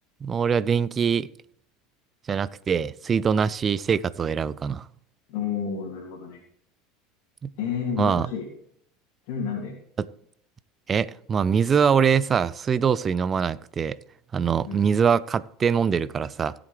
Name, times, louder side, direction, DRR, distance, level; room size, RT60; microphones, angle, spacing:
voice 1, 0.2-1.3 2.3-4.8 7.4-7.5 8.0-8.3 10.0-10.1 10.9-14.0 14.3-16.5, right 7 dB, 30° right, 0.4 m, -23 dB
voice 2, 5.3-6.4 7.6-8.5 9.3-9.7 14.6-14.9, left 7 dB, 65° left, 2.6 m, -30 dB
17.0 x 7.7 x 3.3 m
hypercardioid pair, 75°, 0 cm